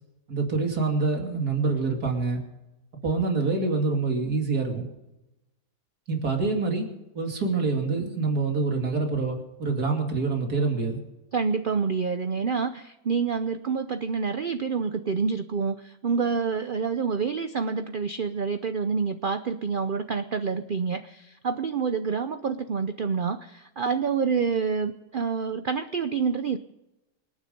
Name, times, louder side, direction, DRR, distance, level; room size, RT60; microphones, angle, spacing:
voice 1, 0.3-2.4 3.0-4.9 6.1-6.9 7.1-11.0, right 4 dB, 70° right, 2 dB, 3.1 m, -26 dB
voice 2, 11.3-26.6, right 5 dB, 55° right, 10 dB, 0.6 m, -27 dB
26.0 x 9.8 x 5.2 m, 0.97 s
omnidirectional pair, 1.7 m